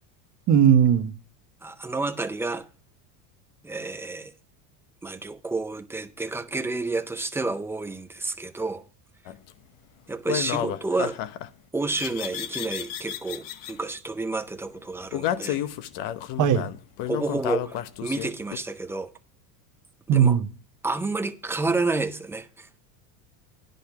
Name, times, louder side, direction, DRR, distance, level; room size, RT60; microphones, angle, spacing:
voice 1, 0.5-1.1 16.4-16.7 20.1-20.5, right 8 dB, 40° right, 1.1 m, -18 dB
voice 2, 1.6-2.7 3.6-4.3 5.0-8.8 10.1-11.2 11.7-15.7 17.1-19.1 20.1-20.4 20.8-22.8, right 3 dB, 5° right, 0.4 m, -30 dB
sound 1, 9.3-9.5 10.3-11.5 11.9-13.7 15.1-18.6, left 11 dB, 55° left, 0.9 m, -31 dB
10.0 x 5.3 x 5.8 m
supercardioid pair, 130°, 49 cm